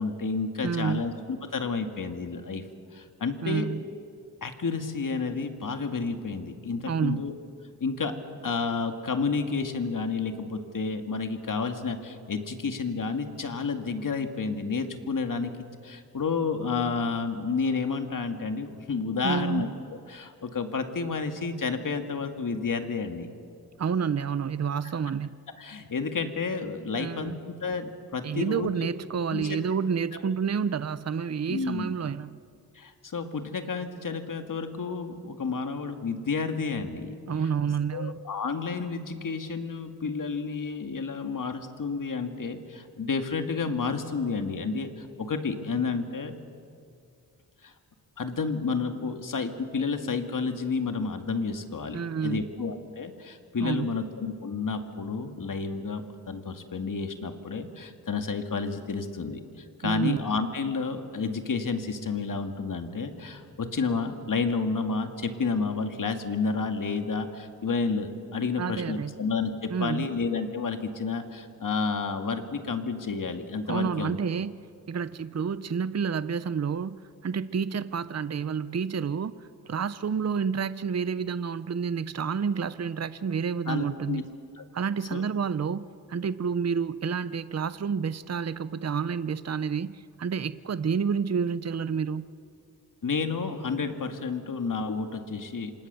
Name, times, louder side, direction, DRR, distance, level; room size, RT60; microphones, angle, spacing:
voice 1, 0.0-2.6 2.9-3.7 4.4-7.3 7.8-8.1 8.4-15.5 15.8-19.7 20.1-23.3 25.6-27.3 27.6-28.7 29.3-29.6 30.1-30.2 31.5-31.9 32.8-37.1 37.9-46.3 47.6-47.7 48.2-59.4 59.8-74.2 83.7-84.2 84.6-84.7 85.1-85.2 93.0-95.7, left 4 dB, 55° left, 6 dB, 2.1 m, -30 dB
voice 2, 0.6-1.0 3.4-3.8 6.9-7.3 19.2-19.7 23.8-25.4 27.0-27.4 28.2-32.4 37.3-38.3 51.9-52.5 53.6-54.0 59.8-60.2 68.6-69.2 69.7-70.1 73.7-74.5 74.9-84.3 84.7-92.3, right 6 dB, 45° right, 15 dB, 0.7 m, -29 dB
27.5 x 26.0 x 6.9 m, 2.4 s
wide cardioid pair, 105°, 37 cm